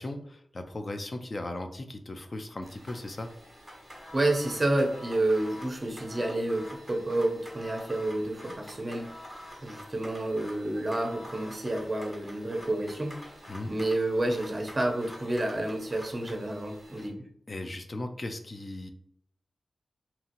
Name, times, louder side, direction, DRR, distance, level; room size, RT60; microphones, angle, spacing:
voice 1, 0.0-3.3 13.5-13.7 16.9-17.0 17.5-18.9, left 2 dB, 40° left, 6 dB, 0.4 m, -37 dB
sound 1, 2.6-17.1, equal, 5° left, 1.1 m, -47 dB
voice 2, 4.1-9.1 9.6-13.3 13.7-17.2, right 1 dB, 30° right, 2 dB, 0.6 m, -29 dB
2.8 x 2.8 x 2.5 m, 0.68 s
cardioid pair, 70°, 0 cm